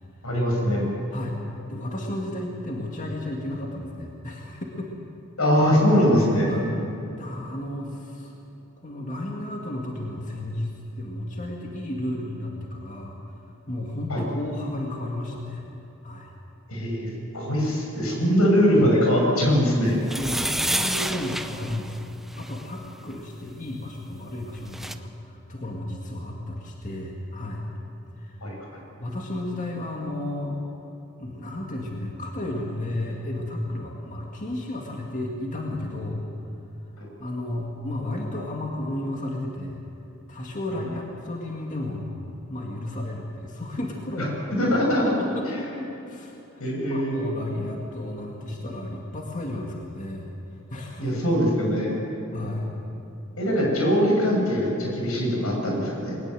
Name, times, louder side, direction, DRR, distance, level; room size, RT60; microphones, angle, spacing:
voice 1, 0.2-0.9 5.4-6.5 14.1-14.2 16.7-20.0 20.2-20.4 28.4-28.6 37.0-37.1 44.2-44.3 44.6-45.2 45.5-45.6 46.6-47.2 51.0-51.9 53.4-56.1, equal, 90° left, -1 dB, 6.6 m, -22 dB
voice 2, 1.7-4.9 6.5-6.7 7.2-8.3 8.8-13.2 13.7-15.6 16.0-16.3 20.1-27.6 28.2-28.4 29.0-30.6 31.2-36.3 37.2-39.8 40.3-42.1 42.5-44.7 45.2-45.7 46.1-46.3 46.9-50.3 50.7-51.1 51.5-51.6 52.3-52.7, left 1 dB, 35° left, -1 dB, 2.2 m, -33 dB
sound 1, 20.0-22.6 24.3-24.4 24.6-25.0, right 1 dB, ahead, 0.6 m, -29 dB
21.0 x 19.5 x 7.8 m, 2.9 s
head